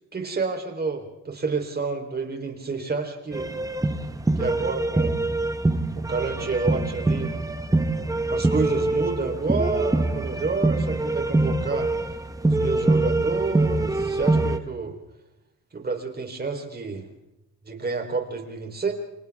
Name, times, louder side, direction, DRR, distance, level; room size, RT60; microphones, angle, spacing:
voice 1, 0.1-3.5 4.4-5.2 6.0-7.3 8.3-11.9 12.4-15.0 15.7-17.1 17.6-18.9, right 4 dB, 30° right, 3 dB, 4.0 m, -29 dB
sound 1, 3.3-14.6, right 2 dB, 10° right, 1.3 m, -24 dB
28.0 x 26.0 x 3.6 m, 0.94 s
cardioid pair, 90°, 30 cm